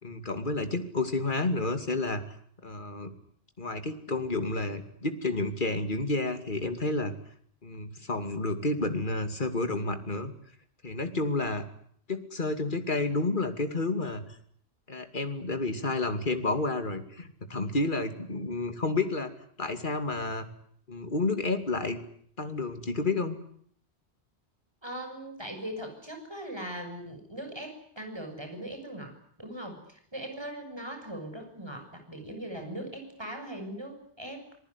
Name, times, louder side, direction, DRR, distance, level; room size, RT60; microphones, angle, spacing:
voice 1, 0.0-2.2 2.6-3.1 3.6-7.1 7.6-10.3 10.8-11.6 12.1-14.2 14.9-19.3 19.6-20.4 20.9-22.0 22.4-23.4, left 2 dB, 45° left, 7 dB, 2.7 m, -30 dB
voice 2, 24.8-34.4, right 1 dB, 25° right, 5 dB, 7.2 m, -40 dB
26.0 x 20.5 x 9.9 m, 0.63 s
omnidirectional pair, 1.1 m